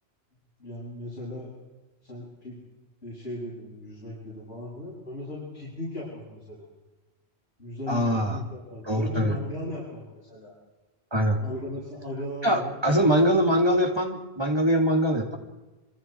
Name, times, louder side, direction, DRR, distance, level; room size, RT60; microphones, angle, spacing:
voice 1, 0.6-1.5 2.0-2.6 3.0-6.7 7.6-10.0 10.3-10.5 11.4-13.0, left 1 dB, 80° left, -8 dB, 8.5 m, -37 dB
voice 2, 7.9-8.4 8.8-9.4 11.1-11.4 12.4-15.4, equal, 25° right, 3 dB, 3.1 m, -23 dB
27.0 x 26.5 x 4.8 m, 1.1 s
omnidirectional pair, 1.1 m